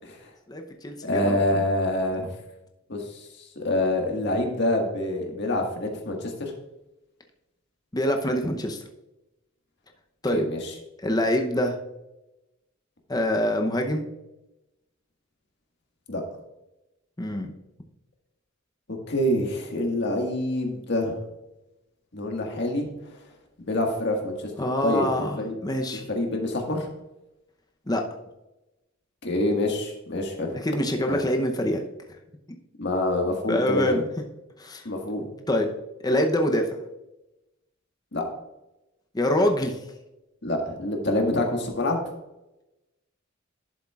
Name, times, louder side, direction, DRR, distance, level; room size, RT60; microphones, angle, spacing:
voice 1, 0.5-1.6 7.9-8.8 10.2-10.5 11.0-11.8 13.1-14.1 17.2-17.5 24.6-26.0 27.9-28.0 30.5-31.8 33.5-34.0 34.6-34.9 35.5-35.7 36.0-36.7 39.1-39.8, left 1 dB, 20° left, 4 dB, 0.7 m, -25 dB
voice 2, 1.0-2.3 2.9-3.3 3.5-6.5 10.3-10.6 16.1-16.2 18.9-21.2 22.1-23.1 23.6-24.5 24.8-25.5 26.1-26.9 29.2-30.5 31.1-31.2 32.8-34.0 34.8-35.3 38.1-38.2 40.4-42.0, left 1 dB, 55° left, 2 dB, 1.7 m, -26 dB
11.5 x 7.2 x 2.4 m, 0.96 s
head